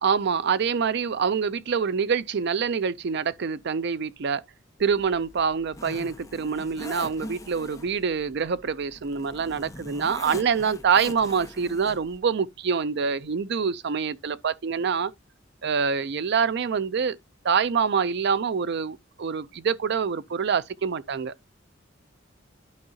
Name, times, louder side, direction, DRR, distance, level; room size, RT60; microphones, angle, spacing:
voice 1, 0.0-4.4 4.8-15.1 15.6-17.2 17.4-21.3, right 6 dB, 60° right, 0.5 m, -26 dB
Zipper (clothing), 4.8-12.2, left 1 dB, 15° left, 1.0 m, -42 dB
11.5 x 4.7 x 2.8 m
head